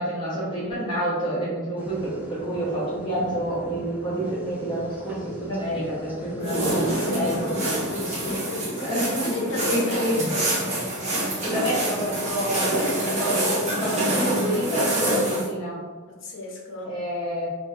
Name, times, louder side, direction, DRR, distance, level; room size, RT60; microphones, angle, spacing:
voice 1, 0.0-7.8 8.7-9.4 9.7-10.3 11.4-15.8 16.8-17.5, right 1 dB, 20° left, -8 dB, 0.9 m, -28 dB
sound 1, 1.8-8.4, equal, 10° right, 0.4 m, -42 dB
voice 2, 6.3-10.0 16.2-17.0, left 3 dB, 60° left, -1 dB, 0.8 m, -33 dB
sound 2, 6.4-15.5, right 1 dB, 35° right, 0.9 m, -26 dB
3.0 x 2.7 x 3.4 m, 1.5 s
head